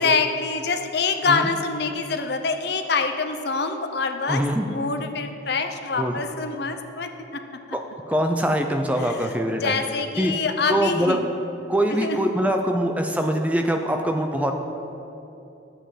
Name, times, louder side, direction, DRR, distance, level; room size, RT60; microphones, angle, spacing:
voice 1, 0.0-7.4 7.7-7.8 9.0-11.3 12.0-12.2, left 4 dB, 55° left, 7 dB, 0.6 m, -26 dB
voice 2, 4.3-4.7 6.0-6.2 7.7-7.8 8.1-9.7 10.2-10.3 10.7-11.2 11.7-14.5, equal, 5° right, 4 dB, 0.4 m, -23 dB
11.0 x 7.7 x 4.9 m, 2.9 s
head